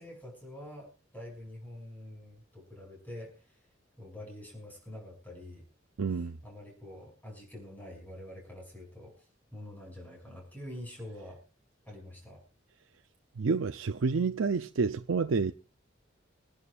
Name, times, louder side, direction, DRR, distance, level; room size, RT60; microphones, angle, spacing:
voice 1, 0.0-3.6 4.0-5.7 6.1-9.1 9.5-11.4 11.9-12.4, left 1 dB, 10° left, 6.0 m, -46 dB
voice 2, 6.0-6.4 13.4-15.5, right 4 dB, 90° right, 0.5 m, -29 dB
25.0 x 11.0 x 2.4 m
head